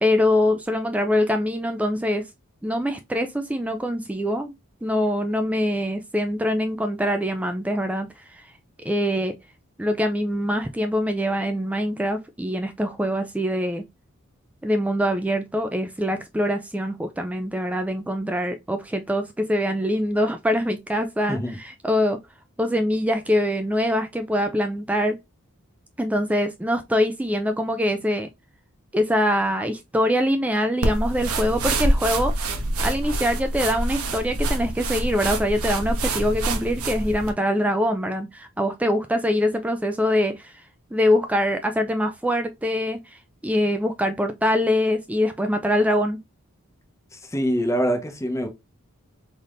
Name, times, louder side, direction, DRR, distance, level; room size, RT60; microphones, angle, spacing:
voice 1, 0.0-2.3 2.6-4.5 4.8-8.4 8.8-9.3 9.8-13.8 14.6-22.2 22.6-25.2 26.0-28.3 28.9-32.3 32.8-40.6 40.9-46.2, equal, 5° right, 0.3 m, -24 dB
sound 1, 30.8-37.3, right 1 dB, 85° right, 1.0 m, -26 dB
voice 2, 47.3-48.5, equal, 15° left, 0.8 m, -24 dB
4.0 x 3.5 x 2.5 m
head